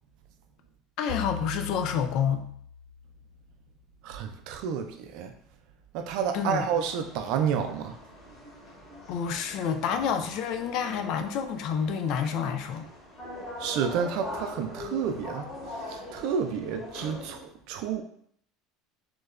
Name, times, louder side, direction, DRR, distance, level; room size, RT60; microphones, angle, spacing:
voice 1, 1.0-2.5 6.3-6.7 9.1-12.9, left 7 dB, 65° left, 7 dB, 0.3 m, -28 dB
sound 1, 1.1-3.6, left 7 dB, 5° left, 0.9 m, -39 dB
voice 2, 4.0-5.3 5.9-8.0 13.6-15.5 15.8-18.0, right 7 dB, 70° right, 6 dB, 0.3 m, -30 dB
sound 2, 6.3-17.4, left 2 dB, 35° left, 1.1 m, -42 dB
3.0 x 2.1 x 2.3 m, 0.66 s
supercardioid pair, 105°, 0 cm